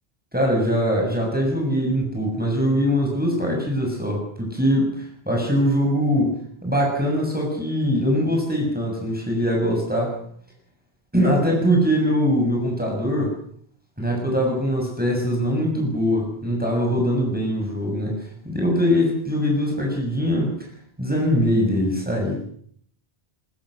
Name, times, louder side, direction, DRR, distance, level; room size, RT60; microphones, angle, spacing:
voice 1, 0.3-10.2 11.1-13.4 14.0-20.5 21.0-22.4, equal, 10° right, -1 dB, 7.0 m, -22 dB
22.5 x 22.0 x 6.5 m, 0.62 s
omnidirectional pair, 1.0 m